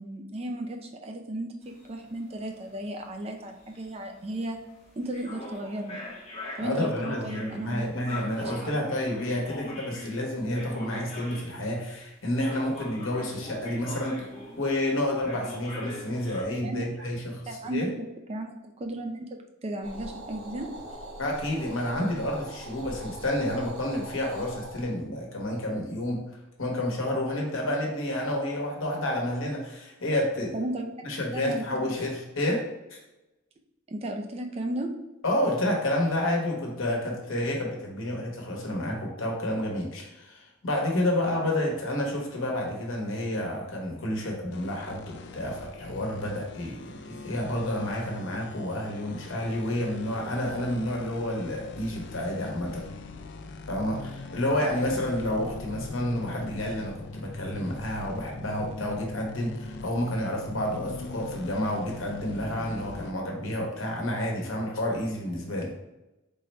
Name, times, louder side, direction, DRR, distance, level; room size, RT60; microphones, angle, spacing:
voice 1, 0.0-4.6 5.0-6.0 6.6-7.9 8.4-8.7 16.6-16.8 17.5-17.9 18.3-19.3 19.6-20.7 30.5-30.9 31.3-31.9 33.9-34.9, right 1 dB, 30° right, 3 dB, 0.4 m, -34 dB
sound 1, 1.6-11.8 12.4-14.9 15.2-16.4, left 1 dB, 30° left, 0.7 m, -42 dB
voice 2, 6.6-14.3 14.6-17.9 21.2-26.3 26.6-30.6 31.0-33.0 35.2-52.8 53.7-65.7, left 1 dB, 85° left, 0 dB, 1.0 m, -30 dB
sound 2, 19.8-24.9, right 1 dB, 85° right, 0.9 m, -42 dB
sound 3, 44.5-63.1, left 3 dB, 55° left, 0.3 m, -41 dB
3.8 x 2.1 x 4.0 m, 0.99 s
head